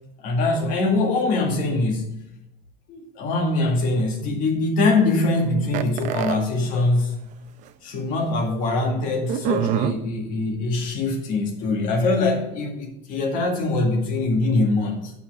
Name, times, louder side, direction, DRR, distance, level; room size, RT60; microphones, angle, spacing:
voice 1, 0.2-2.1 2.9-7.3 7.8-15.1, left 2 dB, 45° left, 1 dB, 2.0 m, -23 dB
sound 1, 5.7-6.4 7.3-7.4 7.7-7.8 9.3-9.9, right 9 dB, 40° right, 0.6 m, -24 dB
8.5 x 5.8 x 4.9 m, 0.86 s
cardioid pair, 155°, 20 cm